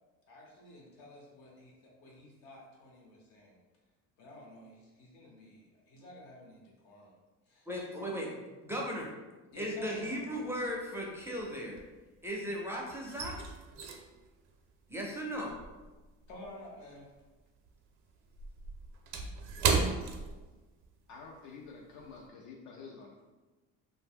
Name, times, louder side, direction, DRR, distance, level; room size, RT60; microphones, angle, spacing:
voice 1, 0.3-3.6 4.2-6.5 6.8-7.1 7.5-7.7 9.5-10.6 16.3-17.1, left 1 dB, 85° left, -2 dB, 0.9 m, -51 dB
voice 2, 7.7-9.1 9.6-11.8 12.2-13.3 14.9-15.6, equal, 10° right, -3 dB, 0.4 m, -37 dB
sound 1, 9.6-10.2 10.4-12.4 12.7-17.4 17.7-21.0 21.3-21.5 22.0-22.2, right 5 dB, 65° right, 0.5 m, -36 dB
voice 3, 21.1-23.2, left 4 dB, 70° left, -1 dB, 0.4 m, -49 dB
2.6 x 2.0 x 3.5 m, 1.2 s
cardioid pair, 125°, 32 cm